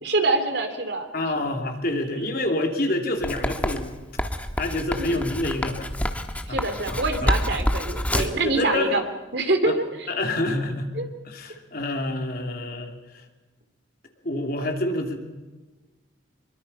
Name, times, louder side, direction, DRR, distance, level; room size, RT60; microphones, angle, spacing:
voice 1, 0.0-1.1 2.0-2.3 4.9-5.2 6.5-9.0 9.3-10.1 11.0-11.1, right 2 dB, 60° right, 7 dB, 2.8 m, -25 dB
voice 2, 1.1-3.9 4.6-5.9 6.5-6.7 7.2-7.3 8.2-9.0 9.7-9.8 10.1-10.9 11.2-13.2 14.2-15.2, left 1 dB, 50° left, 4 dB, 2.9 m, -27 dB
Writing, 3.2-8.4, equal, 5° left, 1.3 m, -27 dB
24.0 x 23.0 x 5.6 m, 1.2 s
head